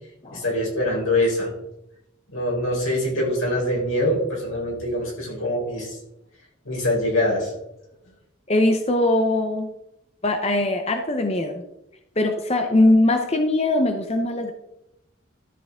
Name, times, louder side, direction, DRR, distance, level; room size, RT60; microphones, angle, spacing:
voice 1, 0.3-1.5 2.3-6.0 6.6-7.5, left 1 dB, 85° left, -2 dB, 4.3 m, -24 dB
voice 2, 8.5-9.7 10.2-11.6 12.2-14.5, left 1 dB, 30° left, 5 dB, 0.7 m, -21 dB
12.5 x 6.7 x 3.6 m, 0.86 s
head